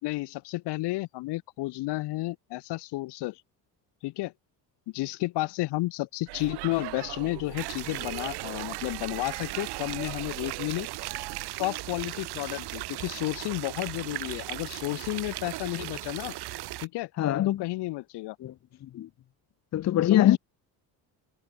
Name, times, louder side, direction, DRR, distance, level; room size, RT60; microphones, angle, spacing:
voice 1, 0.0-3.4 4.0-4.3 4.9-10.9 11.6-16.4 16.8-17.1 17.5-18.4 20.0-20.4, left 19 dB, 80° left, 3.6 m, -32 dB
Speech / Shout / Subway metro underground, 6.3-11.5, right 21 dB, 85° right, 4.1 m, -40 dB
sound 1, 7.6-16.9, right 17 dB, 70° right, 2.9 m, -37 dB
voice 2, 17.2-17.6 18.4-18.5 18.8-19.1 19.7-20.4, left 12 dB, 40° left, 0.7 m, -23 dB
cardioid pair, 125°, 40 cm